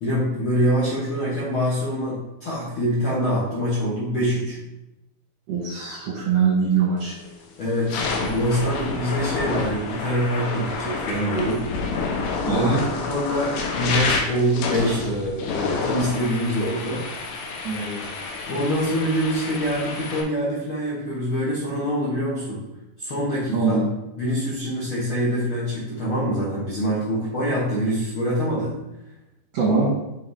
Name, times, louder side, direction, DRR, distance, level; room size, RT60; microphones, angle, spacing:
voice 1, 0.0-4.6 7.6-11.6 12.5-17.0 18.5-22.6 23.0-23.8 24.2-28.7, equal, 60° left, -8 dB, 1.4 m, -25 dB
voice 2, 5.5-7.1 12.5-12.8 17.6-18.0 23.5-23.8 29.5-29.9, right 5 dB, 70° right, -4 dB, 1.7 m, -22 dB
sound 1, 7.0-7.3 7.7-20.2, left 4 dB, 85° left, 2.9 m, -29 dB
6.6 x 4.1 x 4.0 m, 0.93 s
omnidirectional pair, 4.4 m